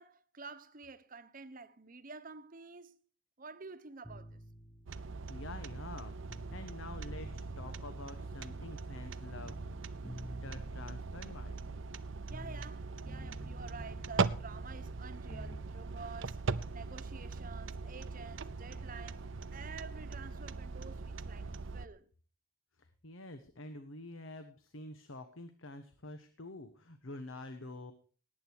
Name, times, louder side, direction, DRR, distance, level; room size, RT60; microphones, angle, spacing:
voice 1, 0.0-3.0 3.4-4.4 12.3-22.1, right 4 dB, 40° right, 1.0 m, -50 dB
sound 1, 4.0-6.7 7.0-9.1 9.4-12.8 13.0-15.7, equal, ahead, 1.2 m, -51 dB
sound 2, 4.9-21.9, right 4 dB, 70° right, 0.7 m, -40 dB
voice 2, 5.3-9.8 10.4-11.8 22.8-27.9, left 2 dB, 75° left, 1.2 m, -48 dB
18.0 x 8.9 x 4.6 m
head